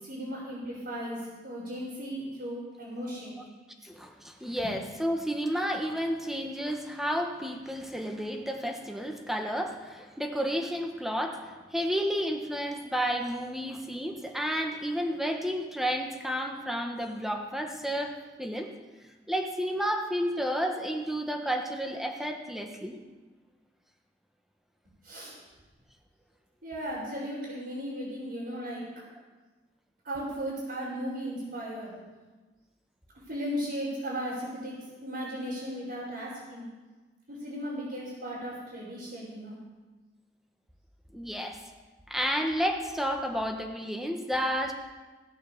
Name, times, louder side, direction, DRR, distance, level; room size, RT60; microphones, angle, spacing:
voice 1, 0.0-3.4 4.6-4.7 25.0-25.3 26.6-28.8 30.0-31.9 33.1-36.7 37.3-39.6, equal, 60° right, -11 dB, 5.8 m, -36 dB
voice 2, 3.8-18.7 19.3-23.0 41.1-41.6 42.1-44.7, equal, ahead, 3 dB, 1.4 m, -31 dB
18.0 x 8.6 x 7.0 m, 1.3 s
head